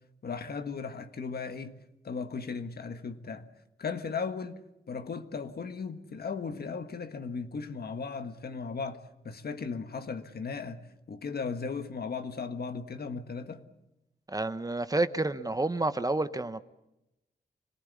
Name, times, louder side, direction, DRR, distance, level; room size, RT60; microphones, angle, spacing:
voice 1, 0.2-1.8 2.0-3.5 3.8-4.6 4.9-10.8 11.1-13.6, left 5 dB, 65° left, 1.6 m, -36 dB
voice 2, 14.3-16.6, right 2 dB, 20° right, 0.9 m, -29 dB
26.5 x 19.0 x 8.5 m
wide cardioid pair, 85°, 17 cm